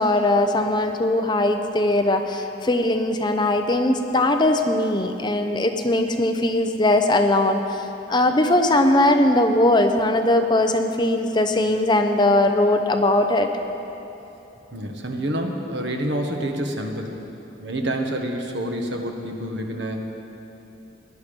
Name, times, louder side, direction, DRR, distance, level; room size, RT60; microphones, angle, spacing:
voice 1, 0.0-13.5, left 1 dB, 25° left, 6 dB, 0.6 m, -20 dB
voice 2, 14.7-17.2 17.6-20.0, right 1 dB, 70° right, 2 dB, 1.4 m, -28 dB
17.5 x 11.0 x 5.3 m, 3.0 s
head